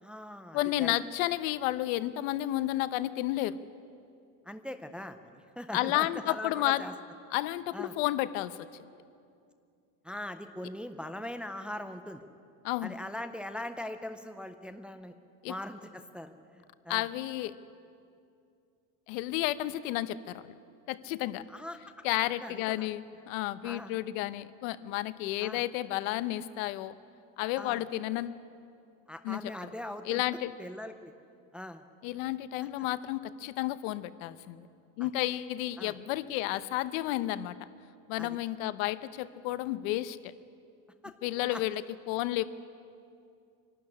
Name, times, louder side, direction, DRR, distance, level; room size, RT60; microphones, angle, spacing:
voice 1, 0.0-0.9 4.4-6.9 7.7-7.9 10.0-12.2 12.8-15.1 15.5-17.1 21.5-21.8 22.4-22.9 23.6-24.0 25.4-25.6 27.6-27.8 29.1-30.2 30.6-31.1 31.5-31.8 35.0-35.1 35.8-35.9 38.2-38.4 41.0-41.1 41.5-41.6, left 1 dB, 5° right, 7 dB, 0.5 m, -41 dB
voice 2, 0.5-3.6 5.7-6.8 7.3-8.6 12.6-12.9 15.4-15.5 16.9-17.6 19.1-20.5 20.9-21.4 22.0-26.9 27.4-28.4 29.2-29.4 30.0-30.5 32.0-34.7 35.0-37.6 38.1-40.3 41.2-41.8 42.1-42.4, left 15 dB, 85° left, 14 dB, 0.9 m, -31 dB
24.5 x 12.5 x 9.8 m, 2.5 s
cardioid pair, 160°, 39 cm